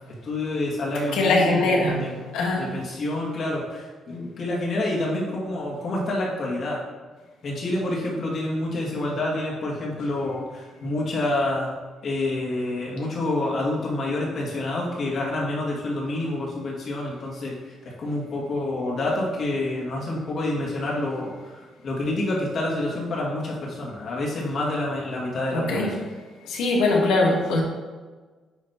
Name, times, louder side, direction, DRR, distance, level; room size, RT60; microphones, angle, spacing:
voice 1, 0.2-2.2 2.6-6.8 7.4-11.7 12.0-25.9, left 2 dB, 55° left, -4 dB, 2.2 m, -28 dB
voice 2, 1.1-2.7 25.5-25.9 26.4-27.6, left 2 dB, 85° left, -1 dB, 1.4 m, -22 dB
9.3 x 3.3 x 4.3 m, 1.4 s
cardioid pair, 90°, 0 cm